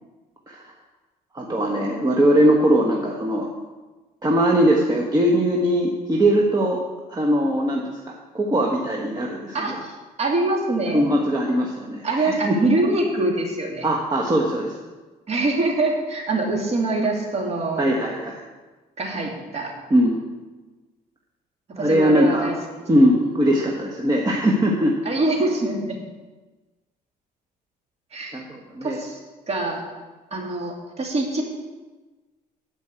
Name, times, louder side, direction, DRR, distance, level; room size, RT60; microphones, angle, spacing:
voice 1, 1.3-3.5 4.2-6.8 7.1-9.8 10.9-12.6 13.8-14.8 17.8-18.4 19.9-20.2 21.7-22.5 22.9-24.9 28.3-29.0, equal, 25° right, -1 dB, 1.3 m, -20 dB
voice 2, 9.5-11.0 12.0-13.9 15.3-17.8 19.0-19.7 21.8-22.6 25.0-26.0 28.1-28.4 28.8-29.2 29.5-29.8 30.3-31.4, right 2 dB, 40° right, 0 dB, 2.6 m, -24 dB
11.0 x 5.3 x 8.1 m, 1.2 s
cardioid pair, 110°, 17 cm